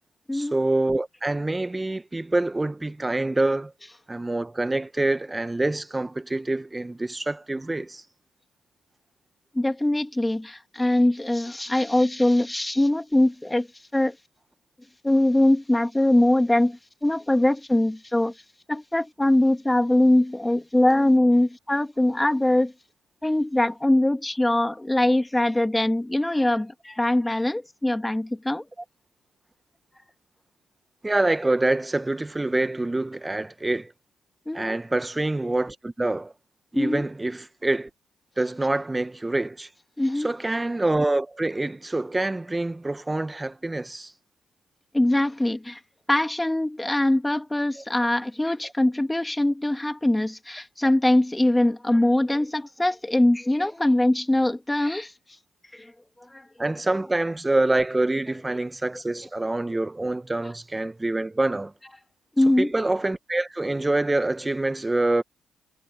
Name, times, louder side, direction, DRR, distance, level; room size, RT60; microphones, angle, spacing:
voice 1, 0.3-3.7 4.1-8.0 31.0-33.9 34.5-36.3 36.7-37.9 38.4-39.7 40.2-44.1 47.8-47.9 56.6-61.7 62.6-65.2, right 2 dB, 20° right, 1.4 m, -26 dB
voice 2, 9.5-13.7 13.9-14.1 15.0-18.3 18.7-22.7 23.2-28.6 34.5-34.8 36.7-37.0 40.0-40.3 44.9-45.8 46.1-55.1 55.7-55.9 56.3-56.5 62.4-62.7, left 1 dB, 15° left, 2.6 m, -22 dB
hypercardioid pair, 45°, 0 cm